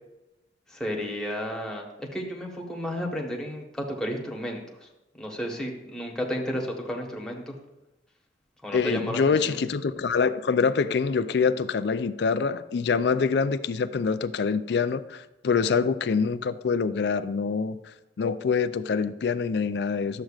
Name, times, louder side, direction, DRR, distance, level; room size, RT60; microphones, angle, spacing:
voice 1, 0.7-1.8 2.1-4.9 5.2-7.6 8.6-9.6, equal, 5° left, -1 dB, 1.1 m, -32 dB
voice 2, 8.7-17.8 18.2-20.2, left 5 dB, 65° left, 13 dB, 0.4 m, -25 dB
11.5 x 7.5 x 2.4 m, 0.95 s
head